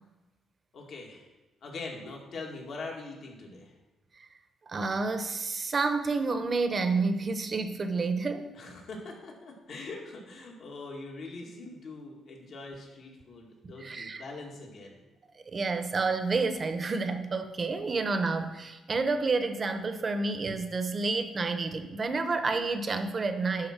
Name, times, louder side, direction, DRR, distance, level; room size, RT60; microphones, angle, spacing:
voice 1, 0.7-1.3 1.6-3.7 8.5-15.0, left 3 dB, 60° left, 0 dB, 2.1 m, -42 dB
voice 2, 4.7-8.5 13.6-14.2 15.5-23.7, right 3 dB, 35° right, 8 dB, 0.9 m, -29 dB
11.0 x 3.7 x 6.0 m, 1.1 s
cardioid pair, 90°, 0 cm